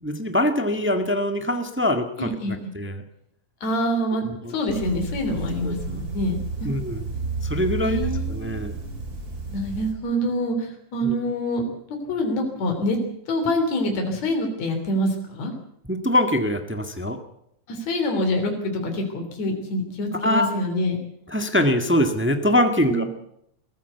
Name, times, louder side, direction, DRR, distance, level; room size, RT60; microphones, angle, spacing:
voice 1, 0.0-2.3 2.7-3.0 4.2-4.5 5.6-6.0 6.6-7.1 7.4-8.0 8.3-8.8 11.0-11.1 15.9-17.2 20.2-20.5 21.3-23.0, left 1 dB, 10° right, 6 dB, 0.6 m, -23 dB
voice 2, 2.2-2.7 3.6-6.7 7.8-8.9 9.5-13.0 13.3-15.5 17.7-21.0 22.8-23.1, equal, 65° left, 3 dB, 4.6 m, -26 dB
sound 1, 4.7-9.9, right 4 dB, 30° right, 3.7 m, -31 dB
21.5 x 15.0 x 8.2 m, 0.74 s
omnidirectional pair, 3.4 m